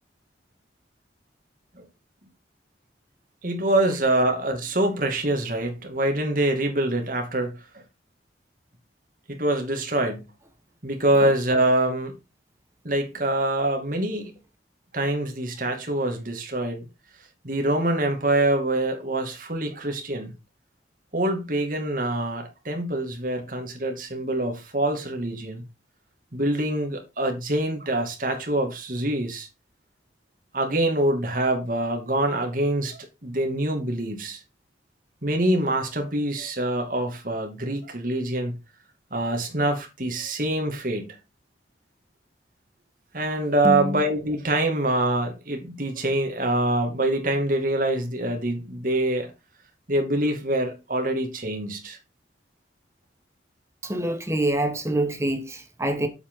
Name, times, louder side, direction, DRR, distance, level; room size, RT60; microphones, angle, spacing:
voice 1, 3.4-7.6 9.3-10.2 10.8-12.1 12.8-14.3 14.9-16.9 17.4-20.3 21.1-25.6 26.3-29.5 30.5-34.4 35.2-38.5 39.1-41.1 43.1-49.3 49.9-52.0, right 1 dB, 50° right, 2.4 m, -25 dB
voice 2, 43.6-44.0 53.8-56.1, right 1 dB, 15° right, 1.4 m, -26 dB
8.0 x 7.9 x 3.8 m
head